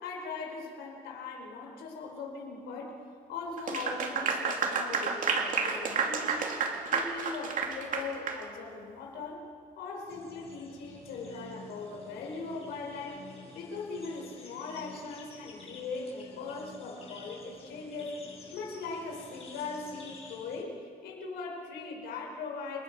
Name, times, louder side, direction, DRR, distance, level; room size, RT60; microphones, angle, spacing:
voice 1, 0.0-3.0 3.3-6.4 6.9-9.5 9.8-18.2 18.5-22.8, left 4 dB, 80° left, 0 dB, 4.5 m, -40 dB
Clapping / Applause, 3.6-8.4, right 5 dB, 50° right, 2.8 m, -30 dB
sound 1, 10.1-20.6, left 4 dB, 35° left, 6.5 m, -50 dB
29.0 x 21.0 x 5.4 m, 2.2 s
cardioid pair, 110°, 17 cm